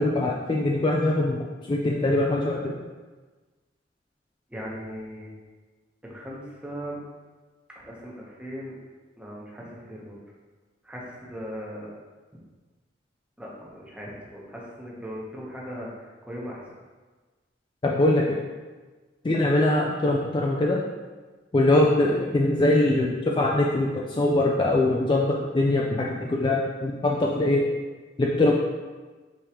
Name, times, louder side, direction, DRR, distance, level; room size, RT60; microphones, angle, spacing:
voice 1, 0.0-2.8 17.8-18.4 19.2-20.8 21.5-27.8 28.2-28.5, left 1 dB, 25° left, -2 dB, 0.3 m, -22 dB
voice 2, 4.5-5.3 6.0-7.0 7.8-8.8 9.2-10.2 10.8-12.0 12.3-12.4 13.4-16.7, equal, 5° right, -5 dB, 0.9 m, -38 dB
5.0 x 3.6 x 2.9 m, 1.3 s
head